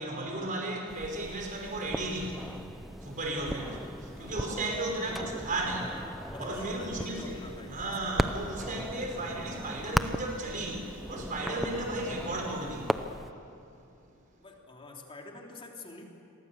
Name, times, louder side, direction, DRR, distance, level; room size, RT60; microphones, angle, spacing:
voice 1, 0.0-7.4 7.7-13.2, right 2 dB, 40° right, 1 dB, 5.5 m, -35 dB
sound 1, 0.9-13.3, equal, ahead, 0.7 m, -37 dB
voice 2, 4.1-4.4 6.3-8.1 14.4-16.1, left 2 dB, 25° left, 0 dB, 3.2 m, -46 dB
29.5 x 23.0 x 7.3 m, 2.6 s
head